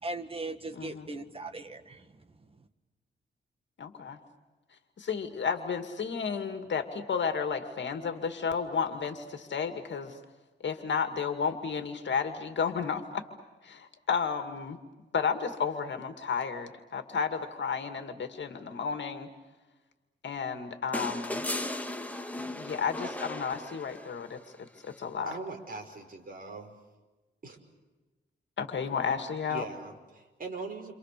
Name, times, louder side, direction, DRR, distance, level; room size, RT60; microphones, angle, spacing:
voice 1, 0.0-2.2, right 2 dB, 30° right, 7 dB, 2.0 m, -39 dB
voice 2, 0.7-1.1 3.8-4.2 5.0-10.2 10.6-13.2 13.6-14.8 15.1-19.3 20.2-21.5 22.6-25.3 28.6-29.7, left 6 dB, 65° left, 7 dB, 2.3 m, -32 dB
sound 1, 20.9-24.3 25.8-25.9, left 1 dB, 5° left, 1.8 m, -36 dB
voice 3, 25.3-26.8 27.4-27.6 29.5-30.9, right 3 dB, 45° right, 2 dB, 5.5 m, -41 dB
29.0 x 27.0 x 6.8 m, 1.2 s
wide cardioid pair, 120°, 20 cm